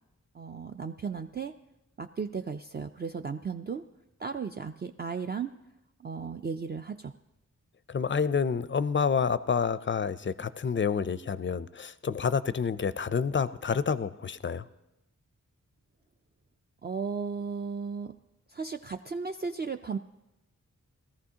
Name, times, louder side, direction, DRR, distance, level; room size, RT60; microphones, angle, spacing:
voice 1, 0.3-1.5 2.0-3.8 4.2-5.5 6.0-7.1 16.8-18.1 18.5-20.0, right 5 dB, 30° right, 6 dB, 0.4 m, -35 dB
voice 2, 7.9-14.7, left 6 dB, 35° left, 15 dB, 0.4 m, -28 dB
17.5 x 14.0 x 2.8 m, 0.91 s
wide cardioid pair, 80°, 32 cm